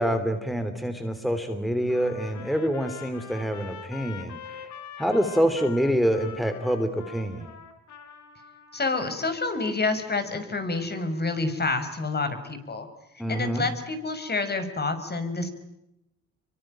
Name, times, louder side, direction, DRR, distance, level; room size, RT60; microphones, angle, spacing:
voice 1, 0.0-4.7 5.0-7.5 13.2-13.7, equal, ahead, 8 dB, 3.3 m, -26 dB
Trumpet, 1.9-9.0, left 7 dB, 70° left, 4.9 m, -43 dB
voice 2, 8.7-12.9 13.3-15.5, left 3 dB, 35° left, 8 dB, 6.1 m, -28 dB
26.5 x 24.5 x 9.0 m, 0.87 s
cardioid pair, 90°, 30 cm